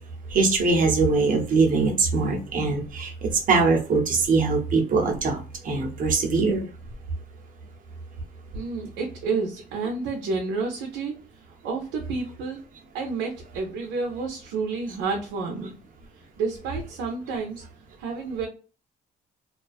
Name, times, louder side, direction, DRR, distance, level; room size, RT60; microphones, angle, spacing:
voice 1, 0.3-6.7, right 4 dB, 50° right, 1 dB, 0.9 m, -22 dB
voice 2, 8.5-11.2 11.6-12.6 12.9-15.7 16.2-17.6 18.0-18.5, right 4 dB, 90° right, 1 dB, 0.6 m, -30 dB
2.4 x 2.3 x 2.3 m, 0.37 s
cardioid pair, 95°, 18 cm